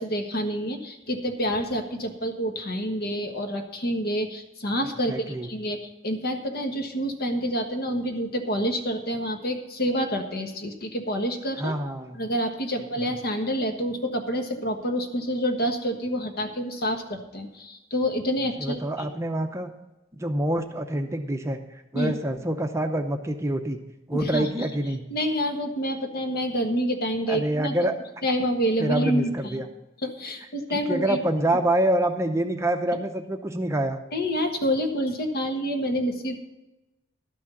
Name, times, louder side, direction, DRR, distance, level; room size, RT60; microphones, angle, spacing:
voice 1, 0.0-5.8 6.0-11.7 12.1-19.1 21.9-22.1 24.1-24.5 25.1-27.9 28.2-29.6 30.0-31.2 34.1-36.4, equal, 55° left, 5 dB, 1.4 m, -28 dB
voice 2, 5.1-5.5 11.6-12.2 18.6-19.7 20.2-21.6 21.9-23.8 24.1-25.0 27.3-28.0 28.8-29.7 30.7-34.0, right 1 dB, 15° right, 5 dB, 0.7 m, -26 dB
12.0 x 6.2 x 7.0 m, 1.0 s
head